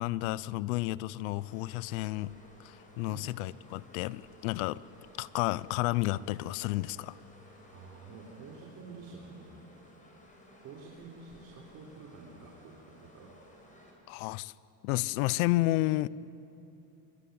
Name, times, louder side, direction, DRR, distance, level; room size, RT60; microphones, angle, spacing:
voice 1, 0.0-2.3 2.6-4.8 5.2-7.2 14.1-14.5 14.8-16.1, left 18 dB, 85° left, 20 dB, 0.7 m, -31 dB
sound 1, 1.3-13.9, left 1 dB, 20° left, 6.4 m, -57 dB
voice 2, 7.7-9.7 10.6-13.3, right 4 dB, 45° right, -2 dB, 3.9 m, -49 dB
25.5 x 23.0 x 9.4 m, 2.8 s
cardioid pair, 145°, 41 cm